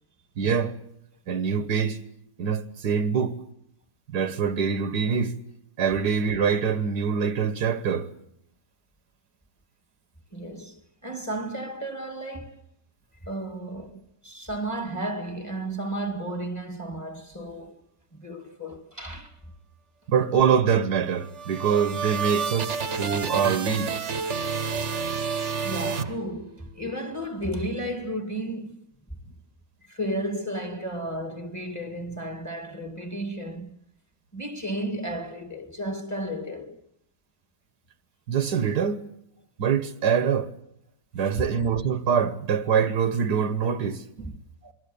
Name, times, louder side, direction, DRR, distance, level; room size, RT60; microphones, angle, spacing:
voice 1, 0.4-0.7 1.3-2.0 2.4-3.4 4.1-5.4 5.8-8.1 20.1-24.0 38.3-39.0 39.6-40.5 41.1-44.0, right 7 dB, 70° right, 1.7 m, -24 dB
voice 2, 10.3-12.6 13.2-17.8 18.1-19.4 24.2-24.4 25.6-28.8 29.8-33.8 34.3-36.8 44.2-44.7, right 1 dB, 10° left, 2.0 m, -33 dB
sound 1, 21.1-26.7, right 5 dB, 45° right, 1.4 m, -30 dB
27.5 x 22.5 x 7.0 m
omnidirectional pair, 1.8 m